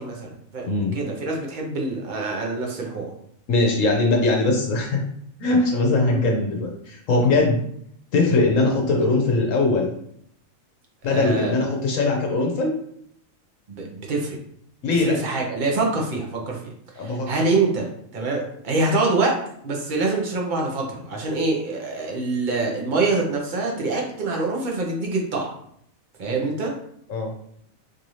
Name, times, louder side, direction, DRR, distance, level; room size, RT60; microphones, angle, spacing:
voice 1, 0.0-3.1 6.1-6.2 11.1-11.5 13.7-14.4 15.0-16.7 17.0-17.9 18.1-19.3 19.6-25.5 26.2-26.7, right 3 dB, 40° right, -1 dB, 0.9 m, -25 dB
voice 2, 0.7-1.0 3.5-5.0 5.4-7.6 8.1-9.9 11.0-12.7 14.8-15.2 17.0-17.3 27.1-27.3, left 3 dB, 70° left, 1 dB, 1.1 m, -21 dB
4.7 x 2.7 x 3.1 m, 0.69 s
omnidirectional pair, 1.4 m